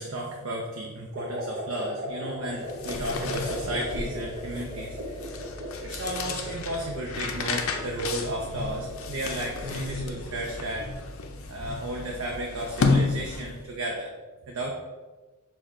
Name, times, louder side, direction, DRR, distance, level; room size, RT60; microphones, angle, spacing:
voice 1, 0.0-5.4 5.8-11.0 11.5-14.1 14.5-14.7, right 1 dB, 80° right, -1 dB, 0.6 m, -34 dB
sound 1, 1.1-10.7, equal, 40° right, 0.9 m, -38 dB
sound 2, 2.5-13.7, left 4 dB, 80° left, 0.5 m, -32 dB
6.2 x 2.2 x 3.7 m, 1.2 s
head